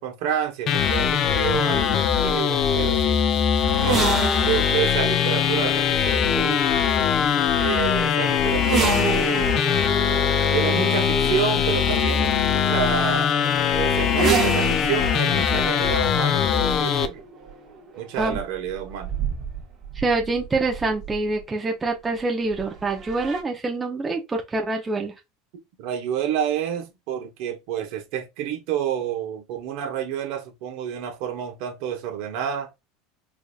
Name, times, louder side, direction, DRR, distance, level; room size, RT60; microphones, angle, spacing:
voice 1, 0.0-3.2 3.8-4.2 4.4-6.8 7.6-9.6 10.5-13.3 13.7-17.2 18.0-19.1 25.8-32.7, right 9 dB, 65° right, 1.1 m, -29 dB
sound 1, 0.7-17.1, left 8 dB, 35° left, 0.4 m, -21 dB
sound 2, 3.6-21.4 22.5-23.4, right 4 dB, 30° right, 1.3 m, -31 dB
voice 2, 20.0-25.1, right 3 dB, 15° right, 0.7 m, -26 dB
4.7 x 2.6 x 2.3 m
supercardioid pair, 140°, 0 cm